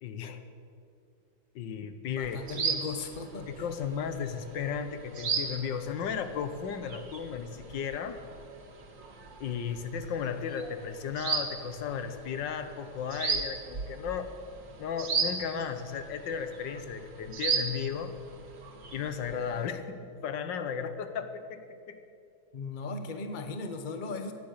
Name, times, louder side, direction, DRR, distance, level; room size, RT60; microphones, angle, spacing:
voice 1, 0.0-0.4 1.5-2.4 3.5-8.2 9.4-14.3 14.8-18.1 18.9-22.0, left 7 dB, 80° left, 9 dB, 1.6 m, -35 dB
voice 2, 2.0-3.6 22.5-24.3, left 3 dB, 30° left, 7 dB, 1.1 m, -37 dB
sound 1, 2.2-19.7, right 5 dB, 85° right, 2.3 m, -37 dB
17.0 x 10.5 x 6.6 m, 2.5 s
omnidirectional pair, 2.0 m